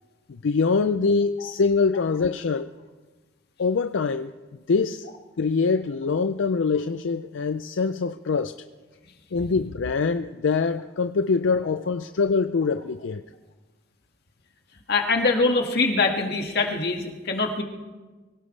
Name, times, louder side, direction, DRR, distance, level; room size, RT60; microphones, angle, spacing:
voice 1, 0.3-2.7 3.6-4.4 4.7-5.1 5.4-8.6 9.3-13.3, left 4 dB, 80° left, 10 dB, 0.5 m, -24 dB
voice 2, 14.9-17.6, left 3 dB, 55° left, 2 dB, 2.0 m, -23 dB
23.5 x 17.5 x 3.3 m, 1.3 s
head